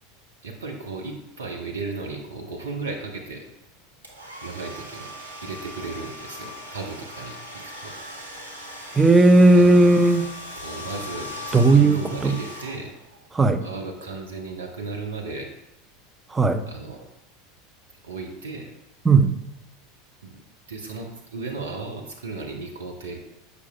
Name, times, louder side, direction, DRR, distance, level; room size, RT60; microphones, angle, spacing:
voice 1, 0.4-3.5 4.4-5.1 5.4-7.9 9.5-9.9 10.6-12.9 13.6-15.5 16.6-17.0 18.0-18.7 20.2-20.4 20.7-23.2, right 3 dB, 70° right, 1 dB, 0.7 m, -35 dB
Domestic sounds home sounds, 4.0-13.2, left 1 dB, 85° right, 1.2 m, -39 dB
voice 2, 9.0-10.3 11.5-12.4 13.3-13.6 16.3-16.6 19.1-19.4, right 2 dB, 15° right, 8 dB, 0.4 m, -16 dB
8.2 x 5.9 x 2.3 m, 0.95 s
figure-of-eight pair, 80°, 0 cm